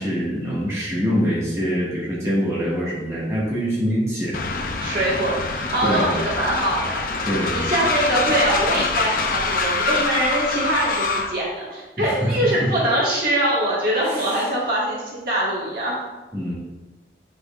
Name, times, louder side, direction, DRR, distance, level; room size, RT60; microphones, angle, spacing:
voice 1, 0.0-4.4 5.8-6.1 7.2-7.6 12.0-12.7 14.1-14.3 16.3-16.5, equal, 15° right, -9 dB, 1.8 m, -24 dB
Train, 4.3-11.4, left 3 dB, 50° left, 0.6 m, -25 dB
voice 2, 4.8-7.1 7.5-16.0, right 1 dB, 55° right, -6 dB, 1.8 m, -23 dB
7.8 x 5.5 x 2.5 m, 1.1 s
head